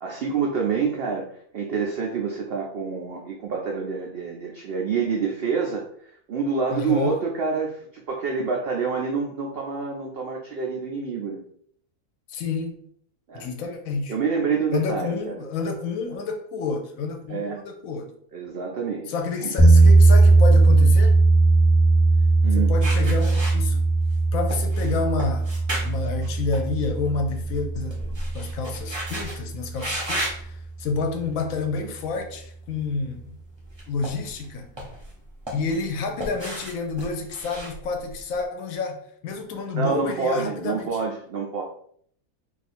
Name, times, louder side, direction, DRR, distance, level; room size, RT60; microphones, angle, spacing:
voice 1, 0.0-11.4 13.3-13.5 14.1-15.5 17.3-17.6 18.3-19.1 19.4-19.5 22.4-22.7 39.7-41.6, right 5 dB, 80° right, 0 dB, 0.5 m, -27 dB
voice 2, 6.7-7.2 12.3-12.8 13.3-14.2 14.7-18.1 19.1-21.2 22.5-23.9 24.3-25.5 25.8-33.4 33.9-34.7 35.5-41.0, left 4 dB, 70° left, 5 dB, 0.9 m, -29 dB
sound 1, 19.6-29.6, right 3 dB, 20° left, 0.9 m, -18 dB
sound 2, 22.8-24.1 24.5-27.0 27.3-29.4 29.8-30.4 31.1-31.3 33.6-34.4 34.8-35.9 36.2-38.3, right 1 dB, 30° right, 0.5 m, -33 dB
2.6 x 2.4 x 4.1 m, 0.62 s
omnidirectional pair, 1.6 m